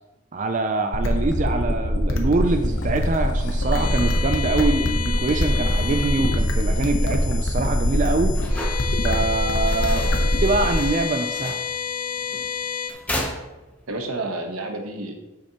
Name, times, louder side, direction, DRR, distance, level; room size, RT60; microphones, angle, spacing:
voice 1, 0.3-8.4 9.0-10.0 10.4-11.6, right 3 dB, 35° right, 6 dB, 0.4 m, -24 dB
sound 1, 0.9-10.9, equal, 65° left, 0.9 m, -23 dB
sound 2, 2.5-12.9, left 7 dB, 35° left, 0.4 m, -31 dB
sound 3, 5.6-14.1, equal, 5° left, 0.8 m, -37 dB
voice 2, 9.9-10.3 13.9-15.1, right 2 dB, 90° right, 4 dB, 1.1 m, -30 dB
8.1 x 6.6 x 2.9 m, 1.1 s
head